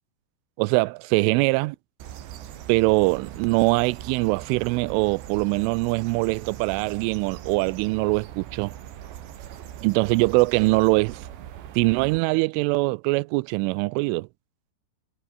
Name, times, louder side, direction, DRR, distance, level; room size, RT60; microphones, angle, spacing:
voice 1, 0.6-1.8 2.7-8.7 9.8-11.3 11.8-14.3, right 25 dB, 90° right, 3.1 m, -22 dB
sound 1, 2.0-12.2, right 11 dB, 65° right, 4.2 m, -41 dB
omnidirectional pair, 5.6 m